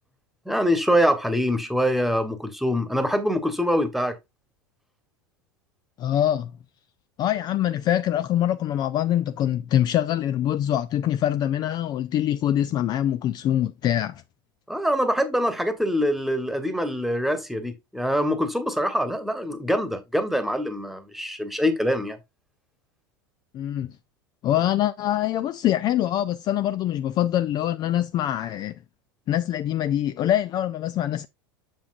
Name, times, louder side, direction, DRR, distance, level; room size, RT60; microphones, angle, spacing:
voice 1, 0.4-4.2 14.7-22.2, equal, ahead, 1.4 m, -24 dB
voice 2, 6.0-6.5 7.2-14.2 23.5-24.0 24.4-28.8 29.3-31.3, left 11 dB, 35° left, 0.4 m, -24 dB
7.4 x 7.0 x 2.6 m
figure-of-eight pair, 85°, 12 cm